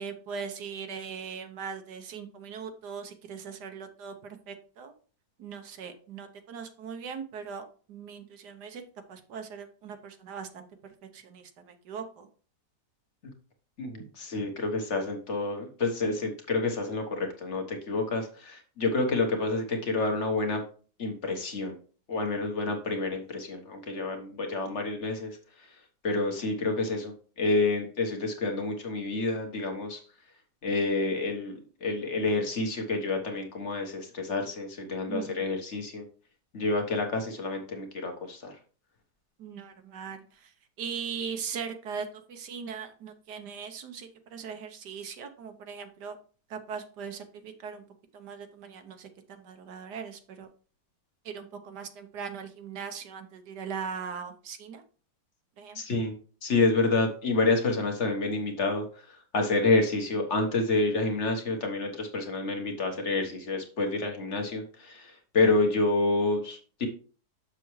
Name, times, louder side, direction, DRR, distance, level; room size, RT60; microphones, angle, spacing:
voice 1, 0.0-4.9 5.4-8.8 9.1-12.3 14.0-14.1 35.1-35.5 39.4-46.2 46.5-47.8 48.1-50.5 51.2-54.8 55.6-55.8, right 6 dB, 70° right, 7 dB, 1.5 m, -40 dB
voice 2, 13.8-20.6 21.0-21.8 22.1-25.4 26.0-30.0 30.6-31.5 31.8-36.0 36.5-38.5 55.7-56.1 56.4-58.8 59.3-66.9, left 3 dB, 45° left, 4 dB, 1.6 m, -28 dB
7.1 x 6.7 x 3.2 m, 0.40 s
omnidirectional pair, 1.9 m